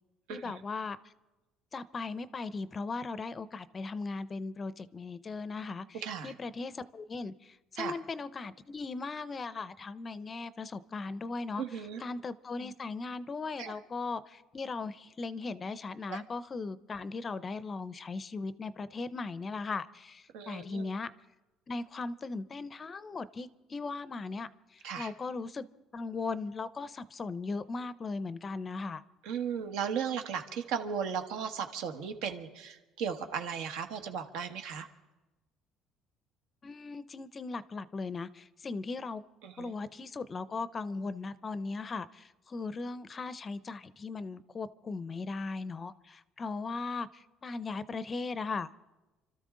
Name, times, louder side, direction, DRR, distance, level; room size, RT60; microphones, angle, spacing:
voice 1, 0.3-1.1 1.7-11.6 12.0-21.1 21.7-25.7 25.9-29.0 36.6-39.2 39.6-48.8, left 4 dB, 25° left, 0.5 m, -38 dB
voice 2, 5.9-6.3 7.8-8.0 11.6-12.0 13.6-13.7 16.1-16.2 20.3-20.9 24.8-25.1 29.2-34.9 39.4-39.7, right 7 dB, 85° right, 1.5 m, -36 dB
28.5 x 13.0 x 3.7 m
cardioid pair, 155°, 0 cm